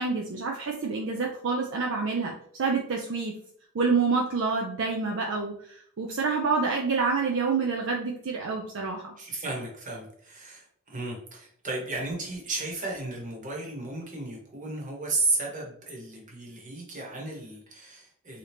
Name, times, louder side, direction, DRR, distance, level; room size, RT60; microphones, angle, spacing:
voice 1, 0.0-3.3 3.7-9.1, right 4 dB, 60° right, 1 dB, 0.5 m, -28 dB
voice 2, 9.2-18.4, right 2 dB, 35° right, -1 dB, 1.1 m, -34 dB
3.7 x 2.8 x 3.4 m, 0.63 s
head